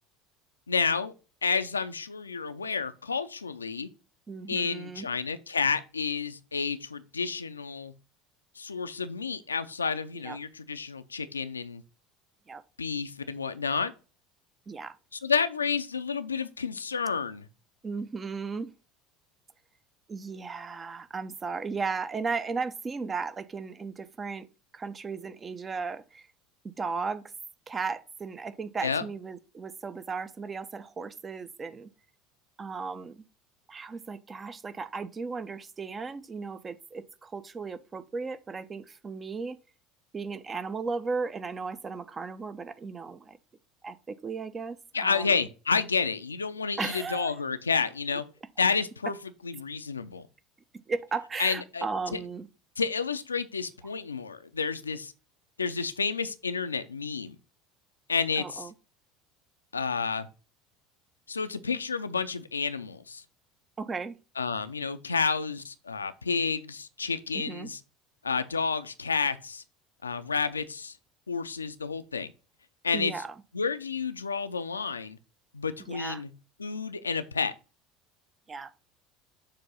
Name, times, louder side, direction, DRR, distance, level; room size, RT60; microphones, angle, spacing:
voice 1, 0.7-1.1 1.4-3.9 4.5-7.9 8.6-11.8 12.8-13.9 15.2-17.5 28.8-29.0 44.9-48.2 48.6-49.2 49.4-50.2 51.4-52.2 52.8-55.1 55.6-57.4 58.1-58.7 59.7-60.3 61.3-63.2 64.4-67.8 68.2-69.6 70.0-70.9 71.3-72.3 72.8-73.1 73.5-75.2 75.5-76.3 76.6-77.5, left 5 dB, 80° left, 0.4 m, -30 dB
voice 2, 4.3-5.1 10.2-10.4 12.5-12.6 14.7-15.0 17.8-18.7 20.1-24.5 24.7-26.3 26.8-27.2 27.7-31.9 32.6-33.2 33.7-39.6 40.1-43.4 43.8-45.4 46.8-47.4 50.7-52.5 58.4-58.7 63.8-64.2 67.3-67.7 72.9-73.3 75.8-76.2 78.5-78.7, right 4 dB, 25° right, 0.5 m, -35 dB
6.8 x 2.6 x 5.4 m
figure-of-eight pair, 70°, 0 cm